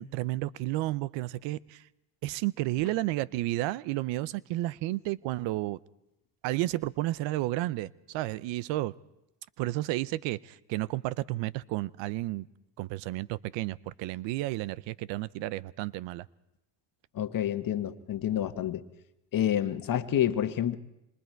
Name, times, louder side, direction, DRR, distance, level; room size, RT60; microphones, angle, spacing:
voice 1, 0.0-1.8 2.2-5.8 6.4-8.9 9.6-12.5 12.8-16.3, right 17 dB, 75° right, 20 dB, 0.7 m, -32 dB
voice 2, 17.1-18.8 19.3-20.8, left 10 dB, 50° left, 9 dB, 1.4 m, -28 dB
26.0 x 22.5 x 4.6 m, 0.90 s
supercardioid pair, 75°, 45 cm